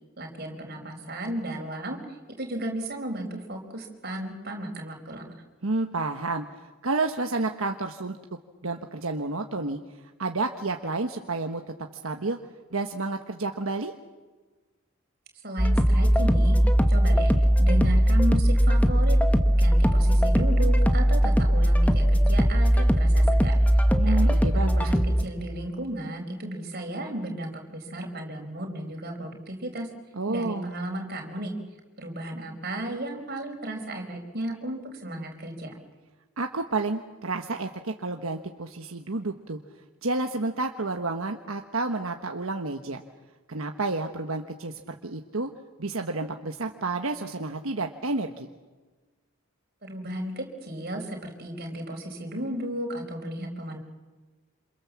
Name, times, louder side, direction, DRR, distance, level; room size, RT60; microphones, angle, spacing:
voice 1, 0.2-2.0 2.4-5.3 15.4-16.6 16.9-17.3 17.6-19.2 19.6-24.2 24.5-29.9 30.3-31.5 32.0-35.8 49.8-53.8, right 1 dB, 45° right, 3 dB, 4.6 m, -34 dB
voice 2, 5.6-8.2 8.6-11.6 12.0-12.4 12.7-13.9 24.0-24.9 30.1-30.7 36.4-39.6 40.0-43.0 43.5-45.5 45.8-48.5, right 3 dB, 75° right, 4 dB, 1.3 m, -30 dB
sound 1, 15.6-25.2, equal, 5° left, 1.2 m, -20 dB
28.0 x 27.0 x 7.4 m, 1.3 s
head